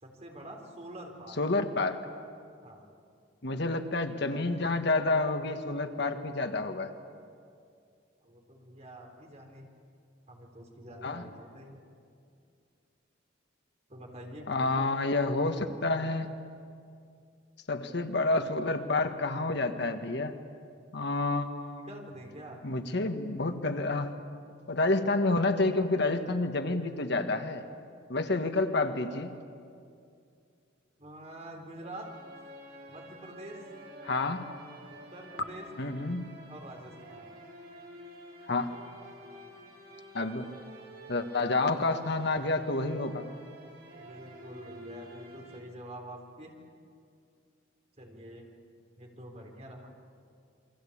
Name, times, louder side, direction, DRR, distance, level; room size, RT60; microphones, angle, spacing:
voice 1, 0.0-1.4 2.6-2.9 8.2-9.7 10.3-11.8 13.9-14.8 21.8-22.6 31.0-32.1 32.9-33.6 34.9-35.7 36.5-37.3 44.0-46.6 48.0-48.5 49.0-49.9, right 1 dB, 35° right, 1 dB, 3.9 m, -46 dB
voice 2, 1.4-2.0 3.4-6.9 11.0-11.2 14.5-16.3 17.7-20.3 20.9-21.9 22.6-24.1 24.7-27.6 28.1-29.3 34.0-34.5 35.8-36.3 38.5-38.8 40.1-40.5 41.1-43.3, left 2 dB, 60° left, 7 dB, 1.5 m, -29 dB
sound 1, 31.8-45.6, right 1 dB, 55° right, 6.4 m, -50 dB
28.5 x 23.0 x 8.6 m, 2.4 s
head